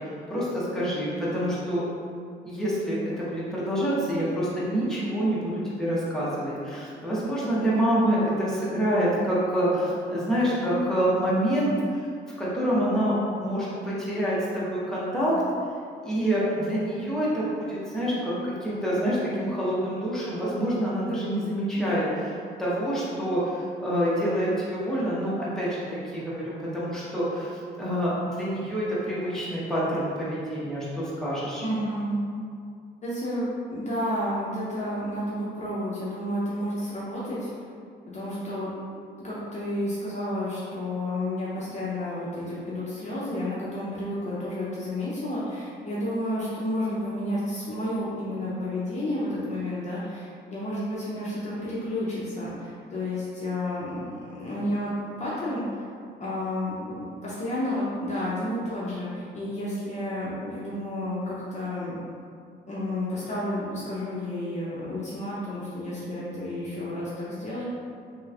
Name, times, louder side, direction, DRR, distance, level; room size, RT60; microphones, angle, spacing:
voice 1, 0.0-1.8 2.4-12.1 12.4-15.3 16.0-22.0 22.6-31.6, equal, ahead, -9 dB, 1.0 m, -27 dB
voice 2, 31.6-32.2 33.0-37.5 38.1-38.7 39.2-54.0 54.2-54.9 55.2-55.7 56.2-62.0 62.7-67.6, left 1 dB, 35° left, -8 dB, 0.7 m, -31 dB
3.2 x 3.0 x 2.4 m, 2.3 s
cardioid pair, 90°, 20 cm